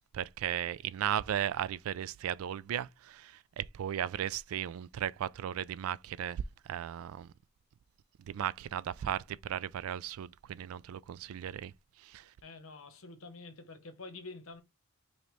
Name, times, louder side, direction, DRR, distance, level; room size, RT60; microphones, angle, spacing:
voice 1, 0.1-6.4 6.7-7.3 8.3-11.7 12.0-12.2, right 10 dB, 70° right, 0.3 m, -36 dB
voice 2, 12.4-14.6, left 3 dB, 65° left, 1.0 m, -47 dB
5.2 x 2.9 x 3.1 m
head